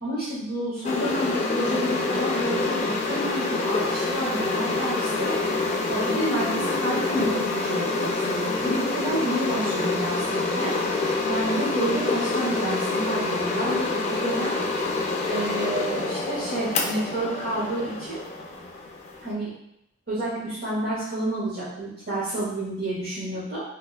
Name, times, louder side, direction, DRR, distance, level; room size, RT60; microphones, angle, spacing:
voice 1, 0.0-5.3 5.9-10.7 11.3-14.6 15.3-18.2 19.2-19.5 20.1-23.6, right 1 dB, 55° right, -11 dB, 1.2 m, -29 dB
sound 1, 0.8-19.3, left 3 dB, 30° left, 0.3 m, -27 dB
3.2 x 3.1 x 2.2 m, 0.79 s
head